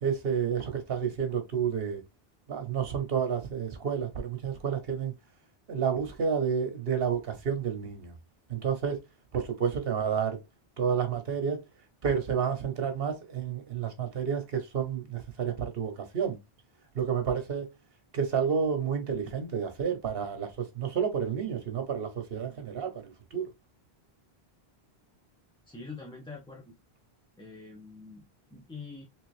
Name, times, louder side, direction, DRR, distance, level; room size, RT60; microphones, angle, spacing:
voice 1, 0.0-2.0 2.5-5.1 5.7-8.2 8.5-9.0 9.3-10.4 10.8-11.6 12.0-16.4 16.9-17.7 18.1-23.4, right 7 dB, 65° right, 1.2 m, -30 dB
voice 2, 25.7-26.7 27.4-29.1, left 4 dB, 5° left, 0.6 m, -45 dB
3.6 x 3.2 x 3.2 m
omnidirectional pair, 1.1 m